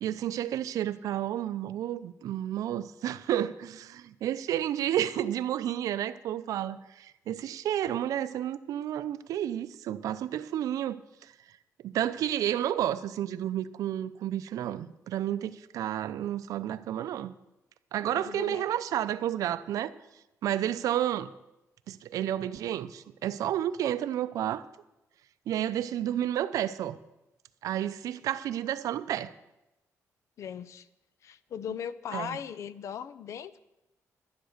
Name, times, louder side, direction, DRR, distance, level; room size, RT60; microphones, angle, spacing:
voice 1, 0.0-11.0 11.8-17.3 17.9-19.9 20.4-21.3 21.9-24.6 25.5-27.0 27.6-29.3 32.1-32.4, right 11 dB, 85° right, 0.5 m, -31 dB
voice 2, 18.1-18.7 30.4-30.9 31.2-33.6, left 8 dB, 60° left, 0.6 m, -38 dB
11.0 x 10.5 x 6.5 m
cardioid pair, 145°, 6 cm